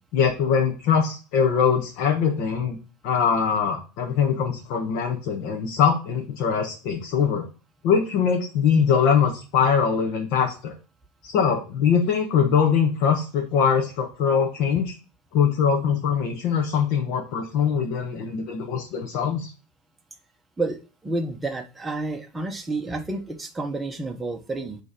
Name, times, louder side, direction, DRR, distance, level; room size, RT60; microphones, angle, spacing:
voice 1, 0.1-2.8 3.0-7.4 7.8-10.7 11.2-14.9 15.3-19.5, left 7 dB, 55° left, 1 dB, 1.2 m, -22 dB
voice 2, 21.0-24.8, right 2 dB, 10° right, 4 dB, 0.9 m, -30 dB
7.0 x 3.4 x 5.1 m, 0.34 s
supercardioid pair, 140°, 0 cm